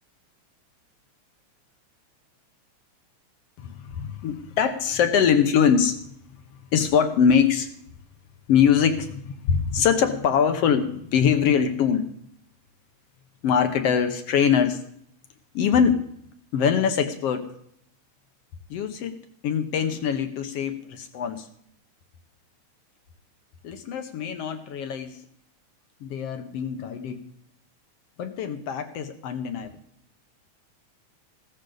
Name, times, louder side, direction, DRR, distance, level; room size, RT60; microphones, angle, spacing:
voice 1, 3.6-6.0 6.7-7.7 8.5-12.1 13.4-14.8 15.5-16.0 16.5-17.5 18.7-19.1 19.4-21.5 23.6-25.2 26.0-27.2 28.2-29.7, left 7 dB, 65° left, 8 dB, 1.8 m, -23 dB
15.5 x 13.5 x 3.9 m, 0.68 s
omnidirectional pair, 3.3 m